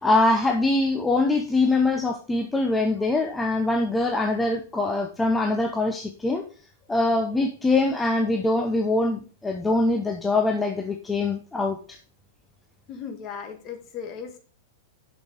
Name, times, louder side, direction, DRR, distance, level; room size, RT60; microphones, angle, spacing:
voice 1, 0.0-6.4 6.9-11.8, left 2 dB, 10° left, 4 dB, 0.8 m, -23 dB
voice 2, 12.9-14.4, left 7 dB, 35° left, 6 dB, 1.6 m, -37 dB
7.1 x 5.5 x 5.1 m, 0.39 s
figure-of-eight pair, 100°, 0 cm